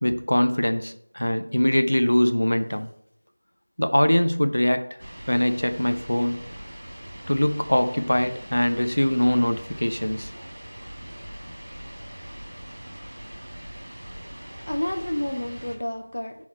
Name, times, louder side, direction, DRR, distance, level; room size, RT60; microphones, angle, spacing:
voice 1, 0.0-2.9 3.8-5.0 5.3-6.4 7.3-10.3, left 1 dB, 85° left, 0.9 m, -22 dB
sound 1, 5.0-15.8, equal, 50° right, 2.3 m, -41 dB
voice 2, 14.3-16.5, left 1 dB, 50° left, 0.7 m, -30 dB
10.0 x 4.2 x 4.4 m
figure-of-eight pair, 180°, 0 cm